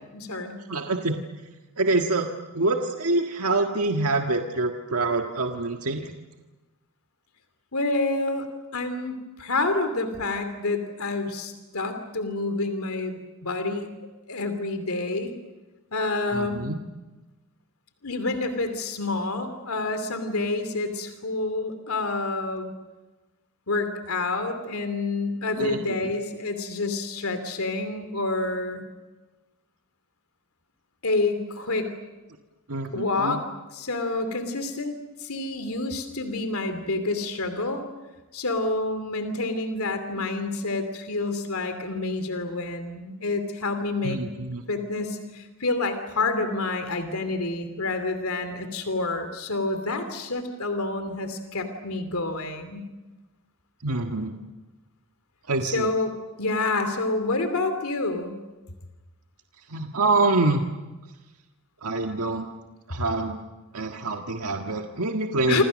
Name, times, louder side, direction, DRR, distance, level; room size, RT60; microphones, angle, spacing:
voice 1, 0.1-0.6 7.7-8.5 8.7-13.9 14.3-15.3 15.9-16.7 18.0-22.7 23.7-28.8 31.0-31.9 32.9-33.4 33.7-34.9 35.2-37.8 38.3-44.2 44.7-52.8 55.7-58.4 65.5-65.6, left 2 dB, 75° left, 8 dB, 2.9 m, -28 dB
voice 2, 0.7-1.2 1.8-2.3 2.5-6.1 16.3-16.8 25.6-26.1 32.7-33.4 44.0-44.6 53.8-54.4 55.5-55.9 59.7-60.6 61.8-62.5 62.9-63.4 63.7-65.6, right 2 dB, 85° right, 3 dB, 1.7 m, -26 dB
28.0 x 26.5 x 6.4 m, 1.1 s
head